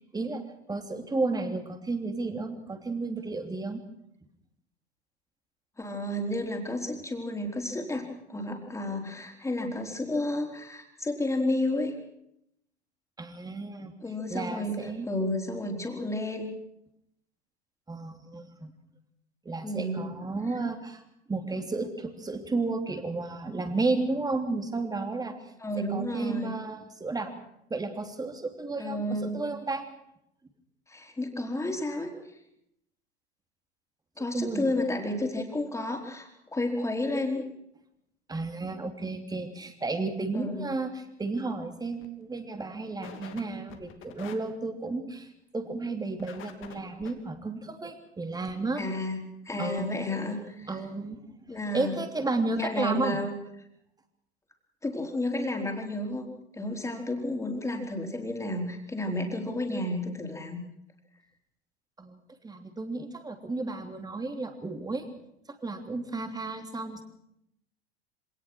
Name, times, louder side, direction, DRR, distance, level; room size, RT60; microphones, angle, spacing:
voice 1, 0.7-3.8 13.2-13.9 14.3-15.1 17.9-18.7 19.4-21.0 21.3-25.4 25.7-27.3 27.7-29.8 34.3-34.7 38.3-48.8 49.6-50.0 50.7-51.2 51.7-53.2 62.0-62.2 62.4-65.1 65.6-67.0, right 3 dB, 10° right, 6 dB, 3.2 m, -32 dB
voice 2, 5.8-11.9 14.0-14.8 15.1-16.5 19.6-20.2 25.6-26.5 28.8-29.4 30.9-32.1 34.2-37.4 40.3-40.7 48.8-50.7 51.5-52.0 52.5-53.3 54.8-56.3 56.5-60.6, left 1 dB, 10° left, 2 dB, 4.4 m, -31 dB
sound 1, 40.7-40.8 41.2-41.5 41.9-42.1 42.4-42.5 43.0-43.4 43.7-44.4 46.2-47.1 48.5-48.6 49.2-49.3 49.5-49.6 49.8-49.9, left 10 dB, 40° left, 2.9 m, -46 dB
25.5 x 19.0 x 6.2 m, 0.77 s
figure-of-eight pair, 90°, 32 cm